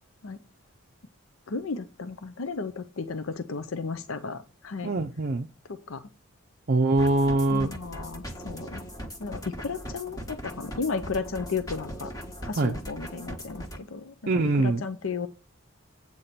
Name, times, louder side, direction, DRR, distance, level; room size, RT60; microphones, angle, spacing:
voice 1, 1.5-4.9 5.7-6.0 7.5-8.8 9.2-12.1 12.4-15.3, left 4 dB, 70° left, 0.6 m, -34 dB
voice 2, 4.8-5.5 6.7-7.7 12.6-12.8 14.3-14.8, right 2 dB, 45° right, 0.5 m, -23 dB
sound 1, 7.0-13.8, equal, 15° left, 1.2 m, -39 dB
8.5 x 4.3 x 6.7 m
head